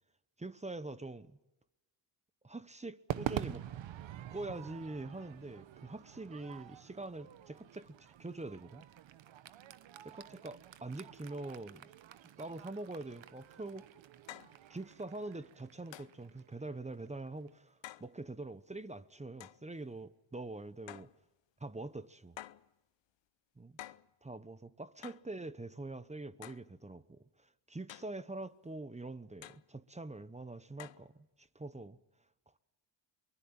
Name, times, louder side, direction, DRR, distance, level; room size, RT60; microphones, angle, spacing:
voice 1, 0.4-1.4 2.4-3.7 4.3-8.8 10.0-11.8 12.4-13.9 14.7-21.1 21.6-22.4 23.6-23.7 24.2-32.0, right 2 dB, 15° right, 1.1 m, -44 dB
Crowd / Fireworks, 3.1-17.5, right 12 dB, 65° right, 1.1 m, -47 dB
sound 1, 13.4-13.5 14.3-14.6 15.9-16.2 17.8-18.1 19.4-19.6 20.9-21.2 22.4-22.7 23.8-24.1 25.0-25.3 26.4-26.7 27.9-28.2 29.4-29.7 30.8-31.1, left 13 dB, 65° left, 0.9 m, -50 dB
23.5 x 21.0 x 8.9 m
cardioid pair, 80°, 48 cm